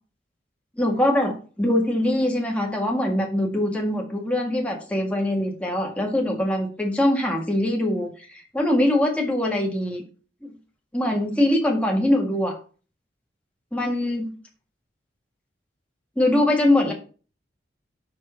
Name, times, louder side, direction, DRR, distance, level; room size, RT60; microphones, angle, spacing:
voice 1, 0.8-10.0 10.9-12.6 13.7-14.3 16.1-16.9, left 1 dB, 5° left, 0 dB, 1.7 m, -23 dB
6.0 x 4.9 x 5.6 m, 0.37 s
head